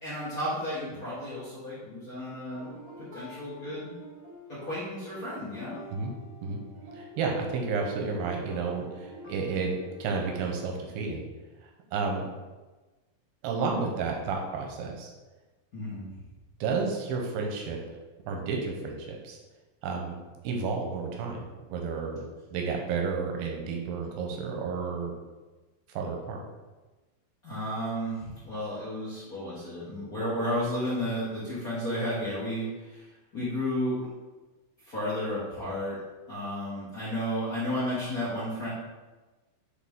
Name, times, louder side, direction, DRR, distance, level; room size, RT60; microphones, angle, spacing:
voice 1, 0.0-2.7 3.0-3.9 4.5-5.8 15.7-16.1 27.4-33.1 33.3-34.1 34.8-36.0 36.3-38.7, equal, 65° left, -10 dB, 0.8 m, -32 dB
sound 1, 2.5-10.3, equal, 55° right, 1.4 m, -48 dB
voice 2, 6.9-11.2 11.9-12.3 13.4-15.1 16.6-17.8 18.3-19.4 19.8-20.1 20.4-22.2 22.5-25.1 25.9-26.4, right 4 dB, 90° right, 1 dB, 2.6 m, -31 dB
7.4 x 4.0 x 3.6 m, 1.2 s
omnidirectional pair, 4.2 m